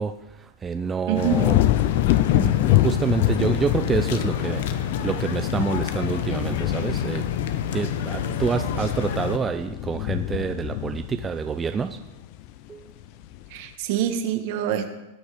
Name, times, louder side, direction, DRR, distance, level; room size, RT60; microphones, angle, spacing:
voice 1, 0.0-7.3 7.7-12.1 12.7-12.9, right 6 dB, 15° right, 8 dB, 0.5 m, -28 dB
sound 1, 1.1-9.4, left 8 dB, 65° left, 1.0 m, -28 dB
voice 2, 1.1-1.4 13.5-14.9, right 11 dB, 55° right, 7 dB, 1.5 m, -25 dB
sound 2, 1.3-12.6 13.0-13.5, left 16 dB, 50° left, 0.4 m, -26 dB
18.0 x 6.3 x 5.0 m, 0.98 s
hypercardioid pair, 130°, 0 cm